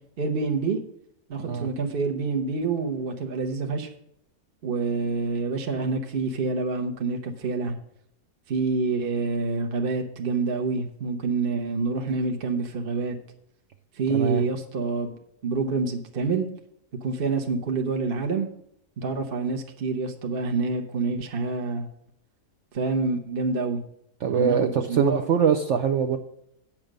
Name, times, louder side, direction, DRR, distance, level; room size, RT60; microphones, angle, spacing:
voice 1, 0.2-0.8 1.3-3.9 4.6-7.7 8.5-13.2 14.0-15.2 15.4-16.5 17.0-18.5 19.0-21.9 22.7-23.8 24.3-25.2, right 4 dB, 40° right, 3 dB, 1.0 m, -27 dB
voice 2, 14.1-14.4 24.2-26.2, right 7 dB, 65° right, 7 dB, 0.7 m, -23 dB
8.8 x 6.1 x 6.5 m, 0.74 s
omnidirectional pair, 1.8 m